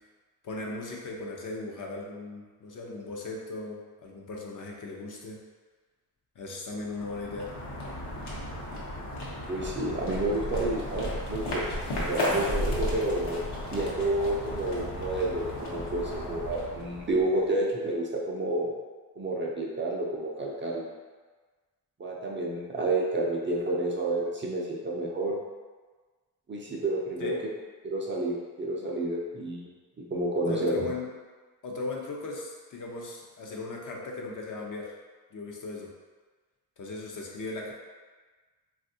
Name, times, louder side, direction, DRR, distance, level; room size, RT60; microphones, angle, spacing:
voice 1, 0.4-5.4 6.4-7.5 27.2-27.4 30.4-31.1 31.6-34.9 35.3-35.9 36.8-37.7, left 2 dB, 50° left, -1 dB, 0.6 m, -37 dB
sound 1, 6.8-17.5, left 1 dB, 70° left, 0.9 m, -34 dB
voice 2, 9.5-11.7 12.0-13.4 13.7-18.7 19.2-20.9 22.0-25.4 26.5-27.4 27.8-29.7 30.1-30.9, right 2 dB, 30° right, -3 dB, 0.5 m, -30 dB
3.3 x 2.4 x 2.7 m, 1.4 s
cardioid pair, 90°, 41 cm